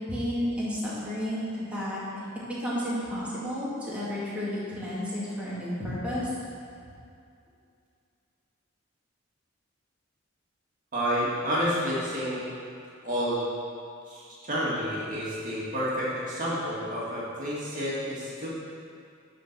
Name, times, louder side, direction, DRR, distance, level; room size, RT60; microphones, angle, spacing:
voice 1, 0.0-2.2 2.5-6.3, equal, 5° right, -10 dB, 2.0 m, -32 dB
voice 2, 10.9-12.4 13.0-13.4 14.1-18.5, equal, 40° right, -7 dB, 2.0 m, -30 dB
10.0 x 4.5 x 5.9 m, 2.4 s
head